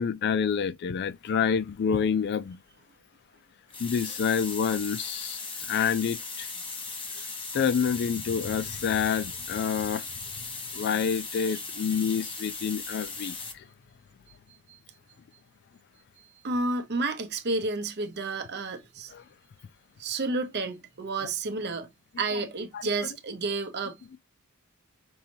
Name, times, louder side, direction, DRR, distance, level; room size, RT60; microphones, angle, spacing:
voice 1, 0.0-2.6 3.8-5.4 5.7-6.5 7.5-10.1 10.7-13.3 19.1-19.2 22.7-22.9, left 7 dB, 50° left, 0.3 m, -27 dB
sound 1, 3.7-13.5, left 4 dB, 25° left, 0.8 m, -38 dB
voice 2, 16.4-19.1 20.0-24.0, right 3 dB, 50° right, 0.7 m, -31 dB
5.4 x 2.8 x 2.7 m
head